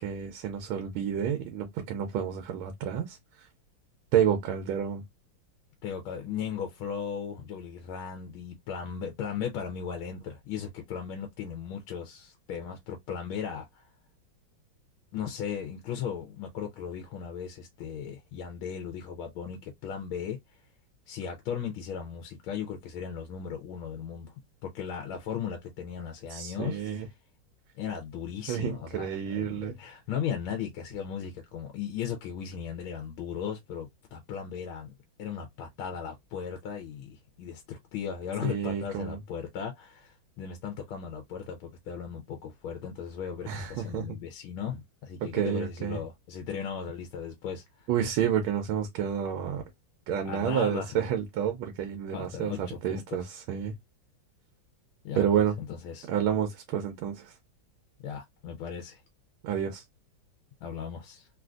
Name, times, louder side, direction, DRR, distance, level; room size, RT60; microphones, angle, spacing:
voice 1, 0.0-3.5 4.1-5.0 26.3-27.1 28.5-29.7 38.4-39.2 43.5-44.1 45.3-46.0 47.9-49.6 50.1-53.7 55.1-55.5 56.1-57.4 59.4-59.8, right 8 dB, 90° right, 1.5 m, -29 dB
voice 2, 5.8-13.9 15.1-20.6 21.1-24.3 24.6-27.0 27.8-34.9 35.2-47.9 50.2-50.9 52.1-53.3 55.0-55.3 55.6-56.1 58.0-59.0 60.6-61.3, left 7 dB, 85° left, 1.5 m, -37 dB
3.7 x 2.5 x 2.3 m
omnidirectional pair, 2.2 m